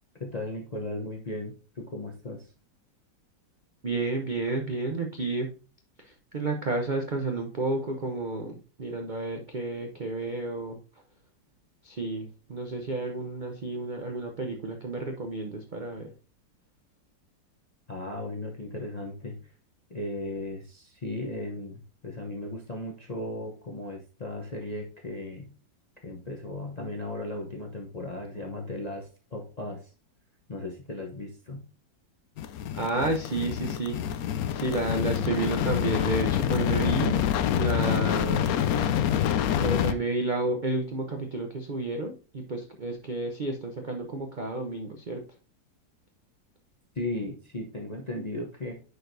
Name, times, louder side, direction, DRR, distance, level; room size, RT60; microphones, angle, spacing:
voice 1, 0.2-2.5 17.9-19.4 19.9-25.5 26.0-29.9 30.5-31.6 46.9-48.7, left 2 dB, 35° left, 1 dB, 0.6 m, -36 dB
voice 2, 3.8-5.5 6.3-10.8 11.8-16.1 32.7-34.0 34.5-37.2 37.5-38.5 39.6-45.2, right 2 dB, 70° right, 3 dB, 0.4 m, -31 dB
sound 1, 32.4-39.9, left 10 dB, 75° left, 0.8 m, -26 dB
9.6 x 4.6 x 2.6 m, 0.35 s
omnidirectional pair, 2.1 m